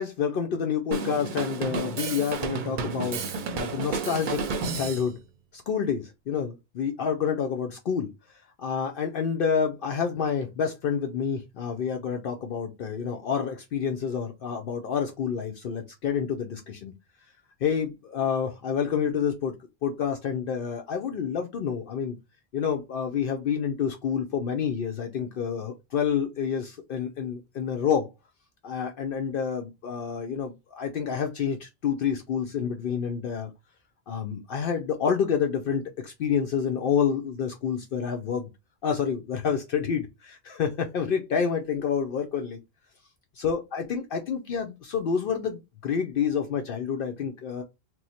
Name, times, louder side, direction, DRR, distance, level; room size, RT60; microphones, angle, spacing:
voice 1, 0.0-5.2 5.5-8.1 8.6-16.9 17.6-19.6 19.8-22.2 22.5-28.1 28.6-33.5 34.1-38.5 38.8-42.6 43.4-47.6, left 7 dB, 65° left, 0.7 m, -28 dB
Drum kit, 0.9-5.1, right 4 dB, 60° right, 0.6 m, -31 dB
3.0 x 2.0 x 4.0 m
omnidirectional pair, 1.1 m